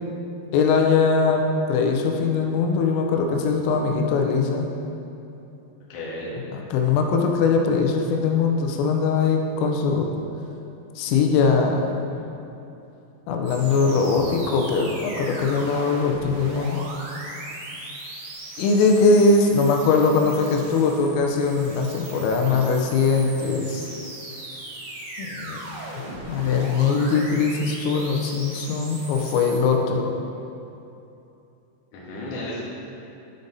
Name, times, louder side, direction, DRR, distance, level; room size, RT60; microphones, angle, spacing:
voice 1, 0.5-4.7 6.5-10.1 11.0-12.1 13.3-16.8 18.6-23.9 25.2-25.6 26.3-30.1, left 4 dB, 90° left, 2 dB, 3.4 m, -21 dB
voice 2, 5.9-6.4 14.2-14.3 31.9-32.6, left 1 dB, 60° left, -7 dB, 2.2 m, -33 dB
sound 1, 13.5-29.6, right 2 dB, 65° right, 2.9 m, -38 dB
9.9 x 5.2 x 4.0 m, 2.8 s
omnidirectional pair, 5.8 m